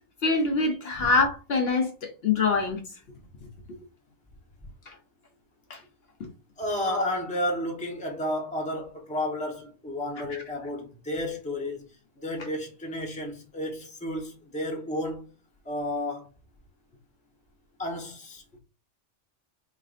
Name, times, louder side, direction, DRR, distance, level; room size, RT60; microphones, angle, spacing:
voice 1, 0.2-2.8 4.9-5.0 5.7-5.8 6.8-7.0 10.3-10.4, left 3 dB, 60° left, 0.9 m, -25 dB
voice 2, 6.6-11.9 12.2-15.2 15.6-16.3 17.8-18.6, left 1 dB, 5° left, 0.8 m, -32 dB
4.4 x 3.3 x 2.4 m
omnidirectional pair, 1.2 m